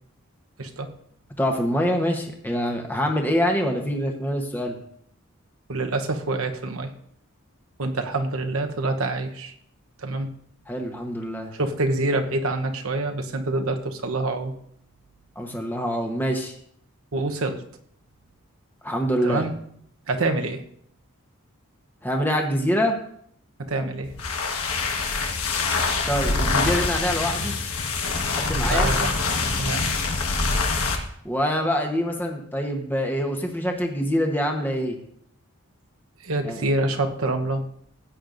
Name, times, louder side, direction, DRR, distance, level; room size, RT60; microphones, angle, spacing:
voice 1, 0.6-0.9 5.7-6.9 7.8-9.5 10.0-10.3 11.5-14.5 17.1-17.6 19.2-19.5 20.1-20.6 23.7-24.1 28.5-29.1 29.5-29.9 36.2-37.6, right 2 dB, 80° right, 5 dB, 1.0 m, -26 dB
voice 2, 1.4-4.8 10.7-11.5 15.4-16.5 18.8-19.5 22.0-22.9 26.1-27.5 28.2-28.9 31.2-35.0 36.4-36.6, equal, 10° left, 2 dB, 1.1 m, -25 dB
sound 1, 24.0-31.1, left 3 dB, 90° left, 1.4 m, -25 dB
16.0 x 8.9 x 2.6 m, 0.68 s
head